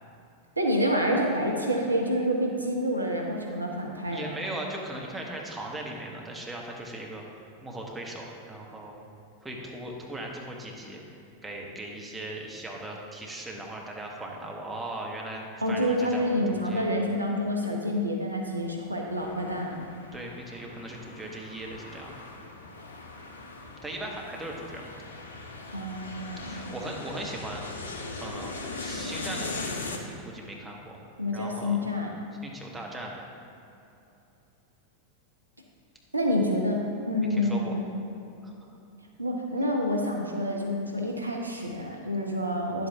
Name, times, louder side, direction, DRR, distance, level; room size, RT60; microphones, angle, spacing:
voice 1, 0.6-4.3 15.6-19.8 25.7-26.7 31.2-32.1 36.1-37.8 39.2-42.9, equal, 85° right, 0 dB, 1.0 m, -28 dB
voice 2, 4.1-7.2 7.6-9.0 9.4-11.0 11.4-16.9 20.1-22.1 23.8-24.9 26.4-27.6 28.2-29.7 30.0-31.0 31.3-31.8 32.4-33.2 37.4-37.7 38.4-38.5, right 1 dB, 10° right, -1 dB, 1.2 m, -38 dB
sound 1, 19.1-30.0, left 3 dB, 70° left, 0.8 m, -40 dB
10.0 x 7.7 x 3.5 m, 2.8 s
figure-of-eight pair, 90°, 0 cm